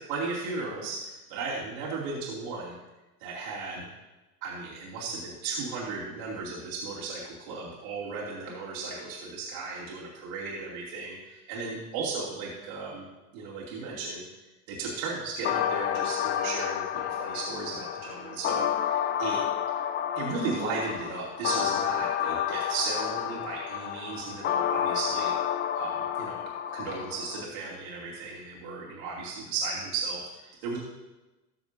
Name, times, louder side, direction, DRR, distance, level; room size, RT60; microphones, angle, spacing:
voice 1, 0.1-2.8 3.2-3.9 4.4-11.1 11.5-13.1 13.3-14.2 14.7-19.4 20.1-25.3 25.7-26.4 26.7-30.8, right 4 dB, 65° right, -6 dB, 2.9 m, -35 dB
sound 1, 15.4-27.4, left 9 dB, 25° left, 0.4 m, -30 dB
19.5 x 7.0 x 2.7 m, 1.1 s
hypercardioid pair, 75°, 44 cm